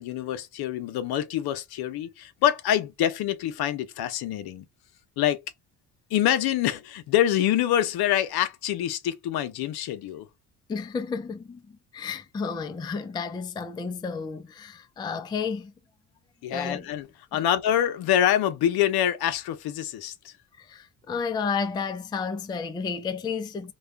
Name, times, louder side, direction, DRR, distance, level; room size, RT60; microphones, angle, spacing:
voice 1, 0.0-4.7 5.2-5.4 6.1-10.3 16.4-20.3, left 11 dB, 65° left, 0.7 m, -25 dB
voice 2, 10.7-11.6 11.9-15.7 16.5-16.9 17.3-17.4 20.6-23.7, left 5 dB, 10° left, 0.3 m, -32 dB
2.3 x 2.3 x 3.3 m
supercardioid pair, 85°, 40 cm